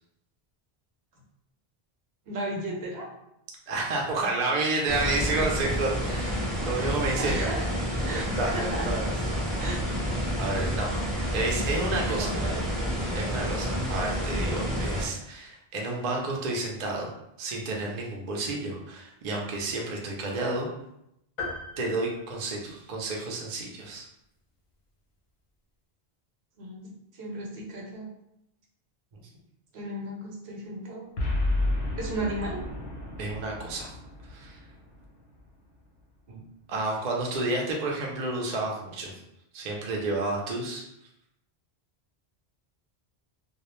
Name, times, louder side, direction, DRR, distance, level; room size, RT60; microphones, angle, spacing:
voice 1, 2.3-3.1 7.2-7.7 8.0-8.9 9.6-9.8 12.2-12.7 16.5-16.7 26.6-28.1 29.7-31.1 32.0-32.7, right 1 dB, 80° right, -1 dB, 0.9 m, -35 dB
voice 2, 3.7-7.5 8.1-9.1 9.6-9.7 10.4-10.9 11.3-12.3 13.1-17.1 17.4-20.7 21.8-24.1 33.2-33.9 34.3-34.6 36.3-36.4 36.7-39.1 39.5-40.8, right 2 dB, 55° right, -1 dB, 0.6 m, -30 dB
sound 1, 4.9-15.0, equal, ahead, 0.4 m, -29 dB
sound 2, 21.4-23.2, left 3 dB, 50° left, 0.6 m, -39 dB
Boom, 31.2-35.6, left 2 dB, 90° left, 0.9 m, -31 dB
2.3 x 2.0 x 2.9 m, 0.81 s
omnidirectional pair, 1.1 m